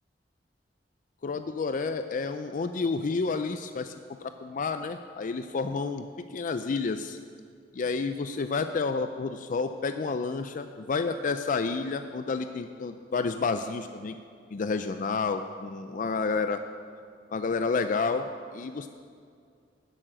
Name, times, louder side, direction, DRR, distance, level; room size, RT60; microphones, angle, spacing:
voice 1, 1.2-3.9 4.2-7.2 7.7-14.2 14.5-16.6 17.3-18.3 18.5-18.9, left 4 dB, 45° left, 9 dB, 0.4 m, -30 dB
11.5 x 7.5 x 7.8 m, 2.2 s
head